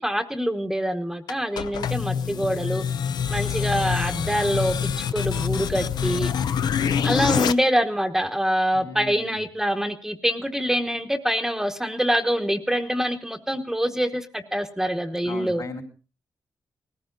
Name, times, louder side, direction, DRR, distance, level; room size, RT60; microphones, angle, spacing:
voice 1, 0.0-2.8 3.3-6.3 7.0-15.6, equal, 5° right, 6 dB, 1.0 m, -25 dB
sound 1, 1.3-7.5, left 8 dB, 85° left, 0.7 m, -26 dB
voice 2, 8.7-9.4 15.2-15.8, left 2 dB, 60° left, 3 dB, 4.1 m, -37 dB
19.0 x 15.0 x 3.9 m, 0.35 s
cardioid pair, 100°, 7 cm